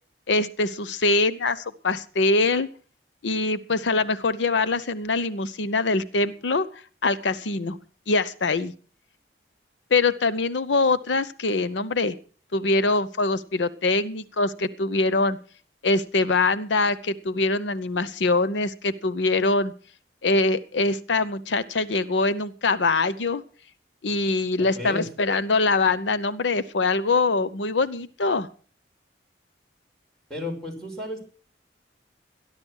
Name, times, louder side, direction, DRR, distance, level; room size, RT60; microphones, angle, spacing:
voice 1, 0.3-2.7 3.2-6.7 7.0-7.8 8.1-8.7 9.9-12.2 12.5-15.4 15.8-19.7 20.2-23.4 24.0-28.5, left 3 dB, 85° left, 15 dB, 0.8 m, -23 dB
voice 2, 24.6-25.1 30.3-31.2, left 1 dB, 5° left, -1 dB, 6.1 m, -33 dB
13.5 x 11.5 x 6.3 m, 0.41 s
head